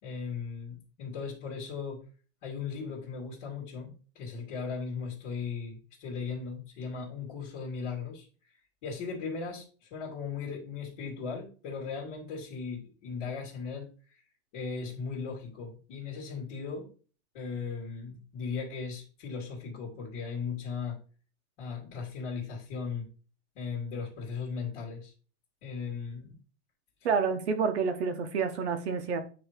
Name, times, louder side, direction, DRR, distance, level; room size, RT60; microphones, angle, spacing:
voice 1, 0.0-2.0 2.4-8.3 8.8-14.2 14.5-16.9 17.3-21.0 21.6-23.1 23.6-25.1 25.6-26.4, left 5 dB, 35° left, -5 dB, 2.3 m, -37 dB
voice 2, 27.0-29.2, right 5 dB, 65° right, 8 dB, 1.3 m, -28 dB
9.2 x 3.2 x 5.0 m, 0.39 s
supercardioid pair, 180°, 35 cm